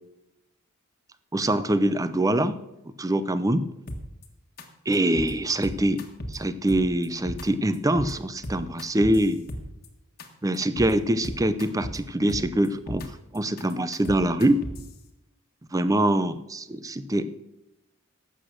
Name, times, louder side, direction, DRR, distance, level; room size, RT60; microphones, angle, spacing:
voice 1, 1.3-2.6 3.0-3.7 4.9-6.0 6.3-9.4 10.4-13.1 13.3-14.6 15.7-17.3, right 1 dB, 15° right, 13 dB, 0.6 m, -24 dB
sound 1, 3.9-4.2 4.6-4.7 4.9-5.3 5.6-6.4 6.7-7.4 7.7-8.1 8.4-9.9 10.2-10.3 10.5-10.9 11.2-12.0 12.3-13.1 13.3-14.9, equal, 45° left, 1.5 m, -35 dB
12.0 x 8.0 x 6.3 m, 0.91 s
head